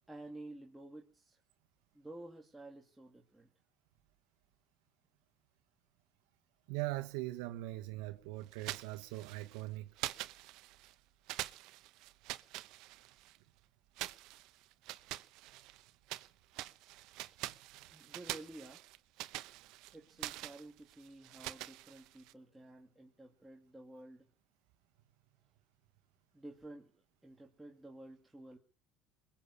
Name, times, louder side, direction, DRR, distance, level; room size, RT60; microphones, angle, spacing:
voice 1, 0.1-1.4 1.9-3.5 17.7-18.8 19.9-24.3 26.3-28.6, right 1 dB, 5° right, 2.3 m, -52 dB
voice 2, 6.7-9.9, right 18 dB, 85° right, 1.4 m, -40 dB
sound 1, 8.5-9.6 10.0-10.9 11.3-13.4 14.0-16.3 16.5-22.3, right 17 dB, 70° right, 0.9 m, -45 dB
21.5 x 7.3 x 8.5 m
cardioid pair, 125°, 0 cm